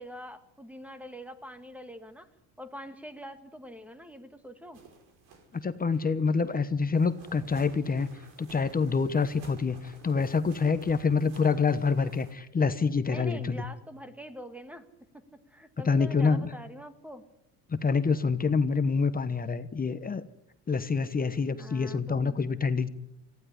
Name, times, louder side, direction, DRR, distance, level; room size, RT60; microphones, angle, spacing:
voice 1, 0.0-2.3 2.6-4.8 13.0-14.9 15.1-17.2 21.6-22.4, equal, 5° right, 9 dB, 1.9 m, -44 dB
sound 1, 4.7-12.3, right 3 dB, 70° right, 5.2 m, -52 dB
voice 2, 5.5-8.1 8.4-13.6 15.8-16.5 17.7-20.2 20.7-22.9, left 5 dB, 20° left, 11 dB, 1.1 m, -26 dB
19.0 x 15.5 x 9.9 m, 0.85 s
cardioid pair, 120°, 45 cm